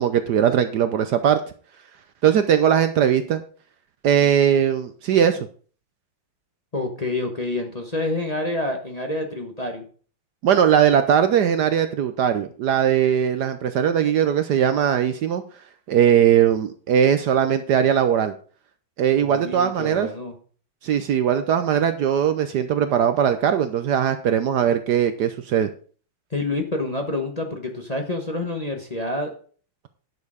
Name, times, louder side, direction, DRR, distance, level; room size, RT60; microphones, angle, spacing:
voice 1, 0.0-1.4 2.2-3.4 4.0-5.5 10.4-15.4 15.9-18.3 19.0-20.1 20.8-25.7, right 9 dB, 65° right, 9 dB, 1.1 m, -20 dB
voice 2, 6.7-9.8 19.2-20.3 26.3-29.3, left 2 dB, 25° left, 2 dB, 1.2 m, -28 dB
11.0 x 6.6 x 5.0 m, 0.42 s
omnidirectional pair, 2.1 m